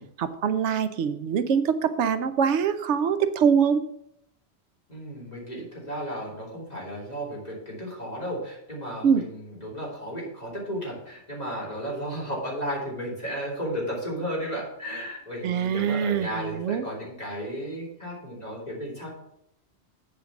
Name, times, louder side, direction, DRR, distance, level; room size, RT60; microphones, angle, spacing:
voice 1, 0.2-3.8 9.0-9.2 15.4-16.8, right 7 dB, 90° right, 12 dB, 1.0 m, -24 dB
voice 2, 4.9-19.1, equal, 35° left, -4 dB, 3.3 m, -34 dB
8.0 x 5.1 x 7.0 m, 0.78 s
omnidirectional pair, 1.1 m